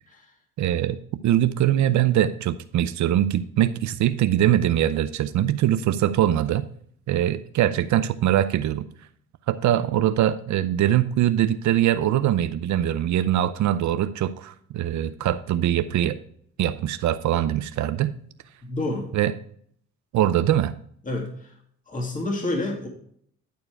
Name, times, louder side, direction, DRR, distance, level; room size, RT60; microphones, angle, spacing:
voice 1, 0.6-1.0 1.2-6.7 7.1-8.9 9.5-16.2 16.6-18.1 19.1-19.3 20.1-20.7, right 12 dB, 70° right, 13 dB, 0.6 m, -22 dB
voice 2, 18.6-19.1 21.0-21.5 21.9-22.9, left 2 dB, 25° left, 0 dB, 2.2 m, -28 dB
11.0 x 4.6 x 4.6 m, 0.64 s
cardioid pair, 90°, 30 cm